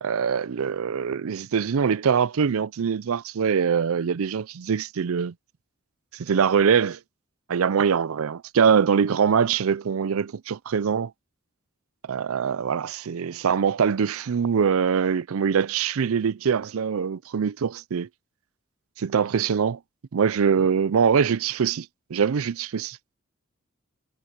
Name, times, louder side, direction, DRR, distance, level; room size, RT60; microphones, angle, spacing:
voice 1, 0.0-5.3 6.2-7.0 7.5-11.1 12.1-18.1 19.0-19.8 20.1-21.9 22.1-23.0, right 6 dB, 80° right, 0.4 m, -23 dB
head